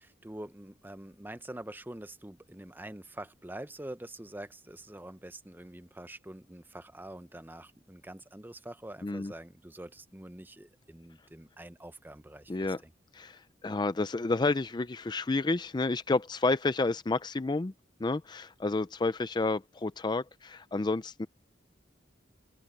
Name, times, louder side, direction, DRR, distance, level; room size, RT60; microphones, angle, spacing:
voice 1, 0.0-12.7, right 1 dB, 10° right, 0.8 m, -45 dB
voice 2, 9.0-9.3 12.5-12.8 13.1-17.7 18.0-21.3, left 3 dB, 25° left, 0.4 m, -30 dB
head